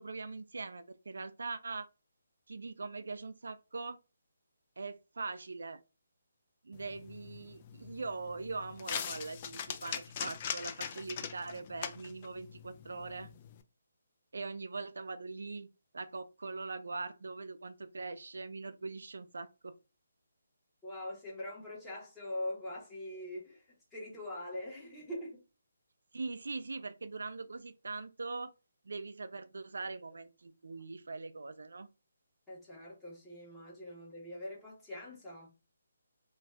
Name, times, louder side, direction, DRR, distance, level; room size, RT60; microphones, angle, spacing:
voice 1, 0.0-1.9 2.5-4.0 4.8-5.8 6.6-13.3 14.3-15.7 15.9-19.7 26.1-28.5 28.9-31.9, right 3 dB, 80° right, 0.3 m, -42 dB
sound 1, 6.7-13.6, left 8 dB, 30° left, 0.3 m, -42 dB
voice 2, 20.8-23.6 23.9-25.4 32.5-35.5, left 1 dB, 10° left, 1.1 m, -43 dB
2.5 x 2.3 x 3.3 m
hypercardioid pair, 160°, 0 cm